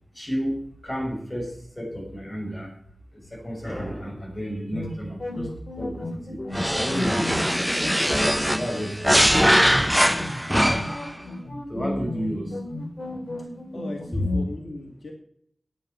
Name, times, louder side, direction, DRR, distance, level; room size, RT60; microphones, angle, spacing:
voice 1, 0.1-2.7 3.1-6.4 6.7-7.7 8.5-9.3 9.6-10.5 11.7-12.6 14.1-14.3, equal, 25° left, 0 dB, 5.8 m, -32 dB
sound 1, 4.7-14.5, left 1 dB, 45° left, 2.7 m, -34 dB
sound 2, 6.5-11.1, equal, ahead, 0.6 m, -21 dB
voice 2, 13.4-15.1, left 2 dB, 75° left, 1 dB, 2.2 m, -39 dB
11.5 x 9.6 x 5.7 m, 0.65 s
wide cardioid pair, 65°, 0 cm